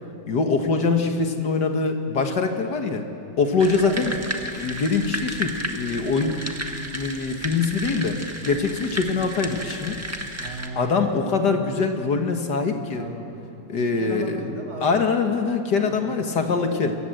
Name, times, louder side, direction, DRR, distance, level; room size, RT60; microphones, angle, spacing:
voice 1, 0.3-3.1 3.4-4.2 4.5-6.4 6.9-8.2 8.5-10.0 10.8-13.1 13.7-14.4 14.8-17.0, left 4 dB, 70° left, 5 dB, 2.2 m, -23 dB
sound 1, 3.6-10.7, right 1 dB, 10° right, 1.4 m, -33 dB
voice 2, 3.8-4.2 10.4-11.2 13.0-13.6 14.0-15.0 15.8-16.6, right 3 dB, 55° right, 0 dB, 3.5 m, -36 dB
25.0 x 22.5 x 7.9 m, 2.7 s
omnidirectional pair, 1.9 m